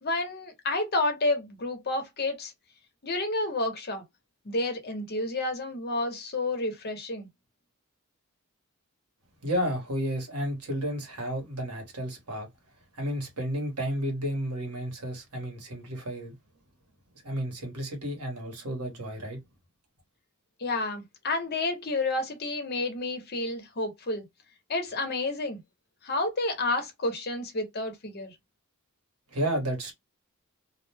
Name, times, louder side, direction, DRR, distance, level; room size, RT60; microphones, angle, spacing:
voice 1, 0.0-2.5 3.0-4.0 4.4-7.3 20.6-24.2 24.7-25.6 26.0-28.3, left 2 dB, 45° left, 0.8 m, -30 dB
voice 2, 9.4-12.5 12.9-16.3 17.2-19.4 29.3-29.9, equal, 80° right, 1.2 m, -32 dB
2.4 x 2.1 x 3.3 m
head